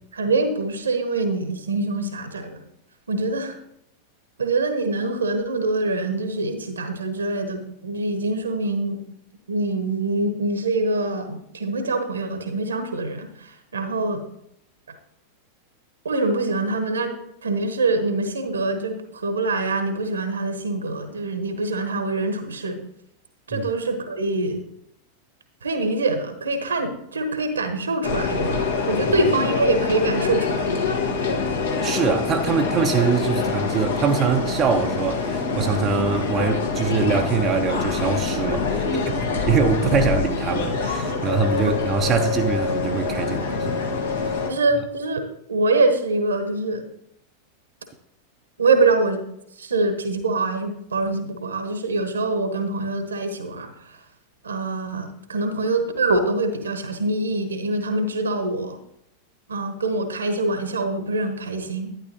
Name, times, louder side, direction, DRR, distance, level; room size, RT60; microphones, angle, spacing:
voice 1, 0.1-2.6 3.1-3.6 4.4-9.0 9.5-14.2 16.0-17.1 17.4-22.8 23.5-24.6 25.6-30.8 35.9-36.0 44.5-45.2 45.5-46.8 48.6-49.2 49.6-54.0 54.4-58.8 59.5-61.9, right 2 dB, 70° right, 1.2 m, -24 dB
sound 1, 28.0-44.5, left 4 dB, 65° left, 1.4 m, -25 dB
voice 2, 31.8-39.2 39.5-44.5, right 5 dB, 30° right, 0.7 m, -23 dB
sound 2, 37.4-44.0, equal, 55° right, 0.9 m, -37 dB
11.5 x 9.9 x 2.9 m
figure-of-eight pair, 90°, 0 cm